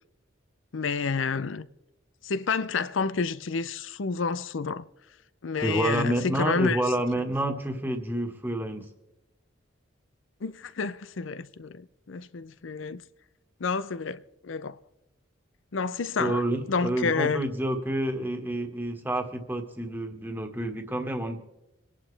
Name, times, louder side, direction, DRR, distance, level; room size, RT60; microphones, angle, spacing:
voice 1, 0.7-1.7 2.2-4.9 5.4-6.8 10.4-13.0 13.6-14.8 15.7-16.4 16.7-17.4, left 5 dB, 80° left, 0.6 m, -29 dB
voice 2, 5.6-8.8 16.2-21.4, right 1 dB, 10° right, 1.6 m, -29 dB
26.5 x 11.0 x 3.4 m
head